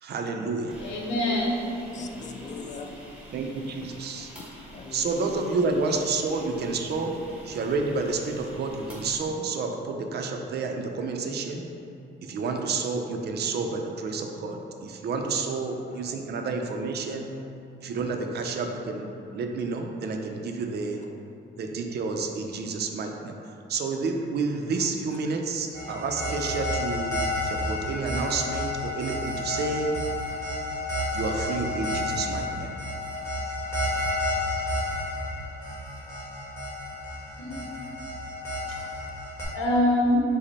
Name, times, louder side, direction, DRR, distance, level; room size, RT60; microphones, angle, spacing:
voice 1, 0.0-0.7 3.3-4.3 4.9-7.1 7.4-11.7 12.2-17.3 17.8-21.0 21.6-23.4 23.7-30.0 31.1-32.7, right 4 dB, 55° right, 3 dB, 0.5 m, -30 dB
sound 1, 0.7-9.2, equal, 5° right, 1.0 m, -47 dB
voice 2, 0.8-1.7 37.4-37.7 38.7-38.8 39.5-40.2, left 1 dB, 75° left, -3 dB, 0.9 m, -25 dB
voice 3, 1.9-3.1 4.7-5.5 15.2-15.5 15.9-16.1 37.8-37.9, left 4 dB, 40° left, 4 dB, 0.4 m, -42 dB
sound 2, 25.7-39.4, left 1 dB, 15° left, 1.4 m, -31 dB
5.0 x 2.1 x 4.0 m, 2.8 s
cardioid pair, 90°, 20 cm